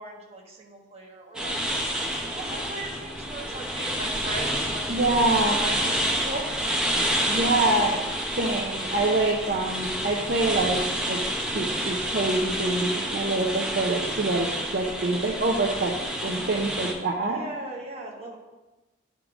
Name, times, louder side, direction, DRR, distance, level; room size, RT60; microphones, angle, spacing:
voice 1, 0.0-1.6 2.3-4.9 5.2-6.5 14.8-15.2 17.2-18.4, right 1 dB, 35° right, -2 dB, 1.3 m, -38 dB
sound 1, 1.3-16.9, equal, 5° right, 0.8 m, -29 dB
voice 2, 4.9-5.7 7.3-8.0 8.4-11.2 11.5-14.5 14.7-15.9 16.2-17.4, right 2 dB, 50° right, -1 dB, 0.6 m, -25 dB
9.4 x 3.7 x 4.9 m, 1.1 s
head